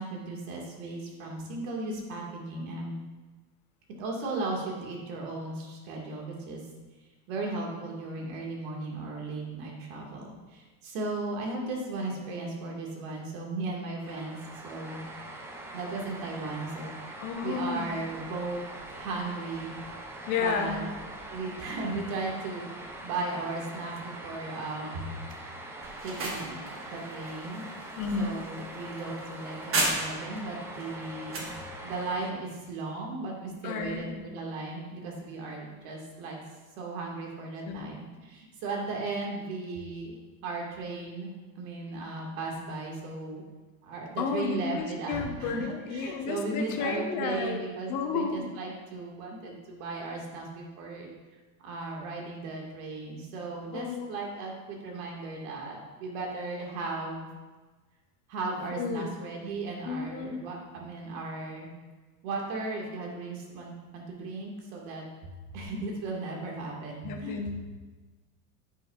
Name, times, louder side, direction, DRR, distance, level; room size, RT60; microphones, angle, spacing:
voice 1, 0.0-2.9 4.0-6.6 7.3-14.4 14.6-15.0 15.7-18.6 18.9-19.7 20.4-20.8 21.3-25.1 25.7-27.6 28.2-31.5 31.8-36.4 36.8-43.4 43.8-51.1 51.6-57.3 58.3-61.7 62.2-65.0 65.5-67.4, right 3 dB, 70° right, -1 dB, 1.9 m, -36 dB
sound 1, 14.0-32.3, right 1 dB, 5° right, 0.3 m, -43 dB
voice 2, 17.2-17.9 20.3-20.8 28.0-28.3 33.6-34.2 37.7-37.8 44.2-47.6 47.9-48.5 53.7-54.1 58.7-59.1 59.8-60.4 67.0-67.7, left 5 dB, 45° left, 4 dB, 1.0 m, -32 dB
sound 2, 25.8-30.4 30.8-31.6, right 2 dB, 30° right, 1.3 m, -34 dB
9.4 x 5.5 x 2.4 m, 1.3 s
supercardioid pair, 125°, 43 cm